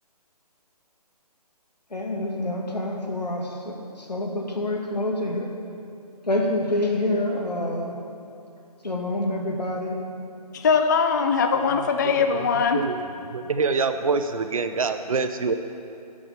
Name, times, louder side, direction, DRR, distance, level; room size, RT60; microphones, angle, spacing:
voice 1, 1.9-5.5 6.3-8.0 8.8-10.0, left 1 dB, 90° left, 0 dB, 2.0 m, -27 dB
voice 2, 10.5-12.8, left 5 dB, 30° left, 6 dB, 0.4 m, -21 dB
voice 3, 12.0-13.0 13.2-15.5, right 4 dB, 60° right, 9 dB, 0.8 m, -26 dB
10.5 x 6.3 x 6.8 m, 2.7 s
figure-of-eight pair, 145°, 20 cm